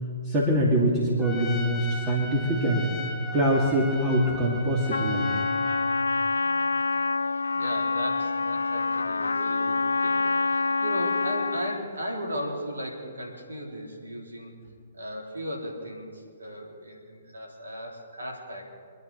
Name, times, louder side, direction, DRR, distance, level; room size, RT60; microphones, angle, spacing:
voice 1, 0.2-2.9 3.3-5.5, right 1 dB, 25° right, -4 dB, 2.7 m, -24 dB
Trumpet, 1.2-6.1, left 3 dB, 5° left, 1.3 m, -38 dB
Trumpet 2, 4.9-11.8, left 3 dB, 90° left, 0.3 m, -26 dB
voice 2, 7.5-14.5 14.9-18.6, equal, 90° right, 0 dB, 3.4 m, -36 dB
25.5 x 10.5 x 4.1 m, 2.2 s
hypercardioid pair, 130°, 0 cm